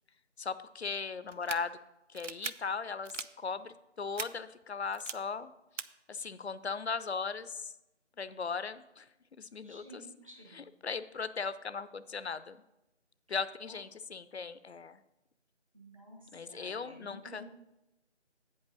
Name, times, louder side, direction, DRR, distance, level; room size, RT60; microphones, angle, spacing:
voice 1, 0.4-1.8 2.1-5.5 5.8-7.7 8.2-9.1 9.4-10.1 10.5-12.6 13.3-15.0 16.3-17.4, left 5 dB, 65° left, 14 dB, 0.5 m, -38 dB
sound 1, 1.3-1.6 2.1-2.5 3.0-3.3 4.2-4.3 4.9-5.1 5.8-5.9, right 7 dB, 85° right, 0.5 m, -39 dB
voice 2, 9.6-10.6 13.7-13.8 15.7-17.4, right 1 dB, 30° right, -2 dB, 1.2 m, -52 dB
8.7 x 5.4 x 5.4 m, 0.94 s
figure-of-eight pair, 175°, 36 cm